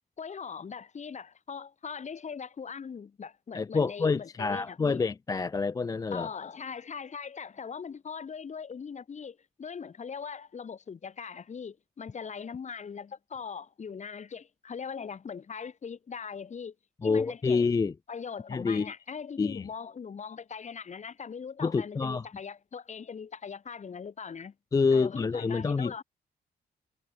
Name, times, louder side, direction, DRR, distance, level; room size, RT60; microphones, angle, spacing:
voice 1, 0.2-5.0 6.1-16.7 17.0-17.6 18.1-24.5 24.9-26.0, left 6 dB, 40° left, 1.4 m, -40 dB
voice 2, 3.5-6.3 17.0-17.9 18.5-18.9 19.4-19.7 21.6-22.3 24.7-26.0, left 4 dB, 20° left, 0.3 m, -27 dB
cardioid pair, 85°, 18 cm